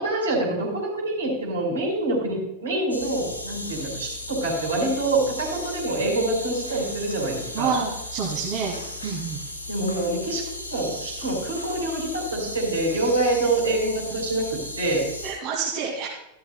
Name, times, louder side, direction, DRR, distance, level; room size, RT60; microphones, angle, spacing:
voice 1, 0.0-7.7 9.7-10.4 10.7-14.5 14.8-15.1, right 2 dB, 70° right, -2 dB, 4.3 m, -26 dB
sound 1, 2.9-15.3, left 1 dB, 85° left, 3.6 m, -36 dB
voice 2, 7.5-8.7 9.0-9.4 14.1-14.2 15.2-16.1, right 6 dB, 40° right, -3 dB, 2.1 m, -28 dB
14.5 x 12.0 x 2.2 m, 0.85 s
figure-of-eight pair, 90°, 0 cm